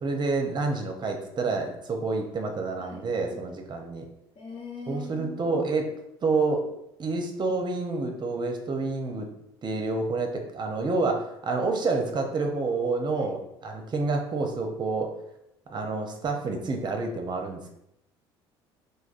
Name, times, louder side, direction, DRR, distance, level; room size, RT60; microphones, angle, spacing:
voice 1, 0.0-4.0 4.9-5.9 6.2-6.7 7.0-9.3 9.6-15.1 15.7-17.7, right 3 dB, 35° right, 3 dB, 0.6 m, -28 dB
voice 2, 2.8-3.5 4.3-5.5 13.1-13.3, left 2 dB, 50° left, -3 dB, 1.1 m, -41 dB
3.3 x 2.2 x 2.4 m, 0.80 s
hypercardioid pair, 75°, 13 cm